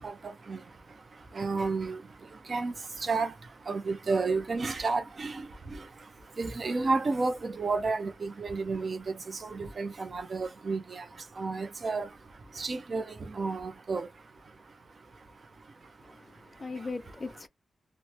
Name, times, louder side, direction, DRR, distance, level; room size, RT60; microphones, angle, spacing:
voice 1, 0.0-16.9, right 3 dB, 40° right, 0.5 m, -33 dB
voice 2, 16.0-17.5, left 3 dB, 25° left, 0.3 m, -39 dB
3.0 x 2.1 x 2.7 m
wide cardioid pair, 175°, 0 cm